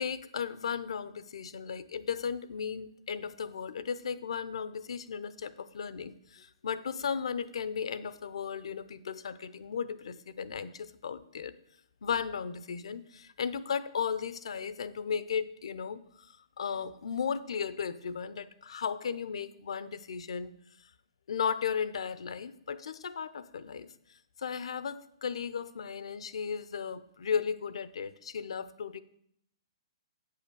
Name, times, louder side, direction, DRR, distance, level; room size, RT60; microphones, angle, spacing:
voice 1, 0.0-11.5 12.0-20.5 21.3-23.9 24.4-29.0, left 6 dB, 75° left, 15 dB, 0.6 m, -35 dB
8.2 x 5.7 x 6.7 m, 0.70 s
hypercardioid pair, 140°, 3 cm